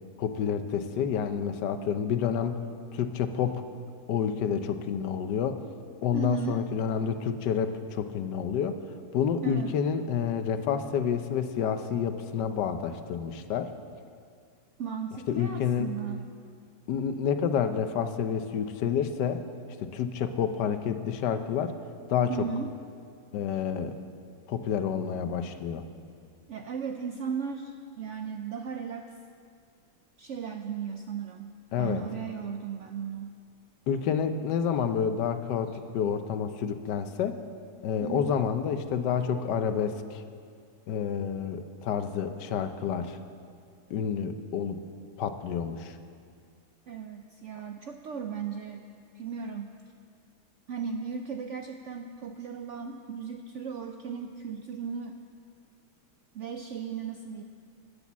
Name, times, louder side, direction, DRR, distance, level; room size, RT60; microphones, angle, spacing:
voice 1, 0.2-2.6 2.9-3.6 4.1-5.6 6.0-8.8 9.1-13.7 15.3-15.9 16.9-19.4 19.8-21.7 22.1-22.5 23.3-24.0 24.5-25.8 31.7-32.0 33.9-37.4 37.8-40.2 40.9-43.2 43.9-44.8 45.2-46.0, left 7 dB, 80° left, 9 dB, 1.3 m, -29 dB
voice 2, 6.1-6.6 9.4-9.7 14.8-16.3 22.3-22.7 26.5-29.1 30.2-33.4 38.0-38.4 46.9-48.8 49.1-49.7 50.7-55.2 56.3-57.4, right 6 dB, 70° right, 5 dB, 0.7 m, -36 dB
12.0 x 8.5 x 7.2 m, 2.3 s
omnidirectional pair, 1.8 m